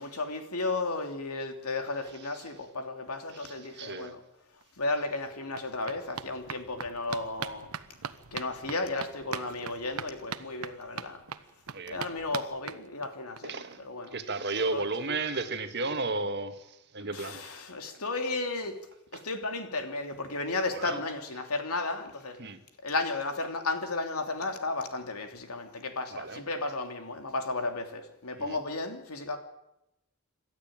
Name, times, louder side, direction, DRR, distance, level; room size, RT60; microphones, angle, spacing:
voice 1, 0.0-4.2 4.8-7.7 8.3-11.2 11.9-14.2 14.7-14.9 17.0-18.8 19.1-22.4 22.8-29.4, left 3 dB, 90° left, 3.1 m, -34 dB
voice 2, 3.4-4.2 11.7-12.0 13.4-13.8 14.1-16.6 16.9-17.4 19.1-19.2 20.7-21.0 22.4-22.6 26.1-26.4 28.4-28.6, right 3 dB, 50° right, 1.8 m, -33 dB
sound 1, 4.6-4.7 4.9-13.4 13.7-13.8 14.1-14.2 14.4-14.5, right 6 dB, 85° right, 1.1 m, -41 dB
27.5 x 13.0 x 8.9 m
head